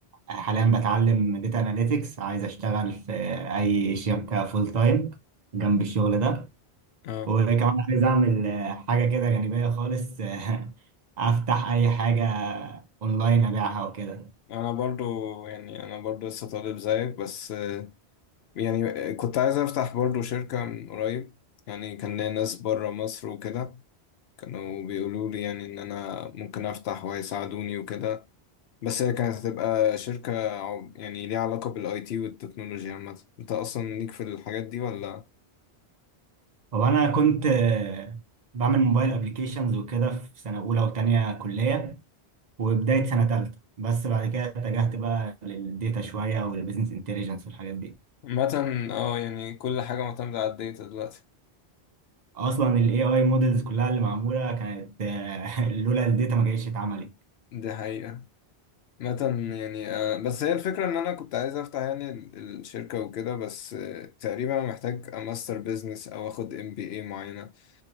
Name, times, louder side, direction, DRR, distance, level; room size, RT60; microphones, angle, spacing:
voice 1, 0.3-5.2 5.5-6.5 7.3-10.7 11.2-14.3 36.7-38.2 38.5-42.0 42.6-47.9 52.3-57.1, right 5 dB, 45° right, 0.8 m, -25 dB
voice 2, 14.5-17.9 18.5-21.3 21.7-23.8 24.4-28.2 28.8-35.3 48.2-51.2 57.5-58.3 59.0-67.5, left 9 dB, 75° left, 0.8 m, -30 dB
2.9 x 2.6 x 2.9 m
omnidirectional pair, 1.1 m